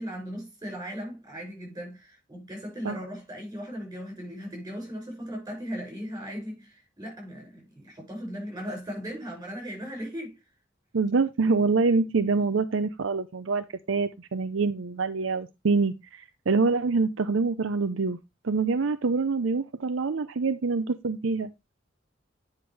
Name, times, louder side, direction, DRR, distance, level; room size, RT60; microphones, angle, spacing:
voice 1, 0.0-10.4, equal, 20° right, 6.3 m, -37 dB
voice 2, 10.9-18.2 18.4-21.5, right 4 dB, 80° right, 0.6 m, -25 dB
9.6 x 5.8 x 3.3 m
head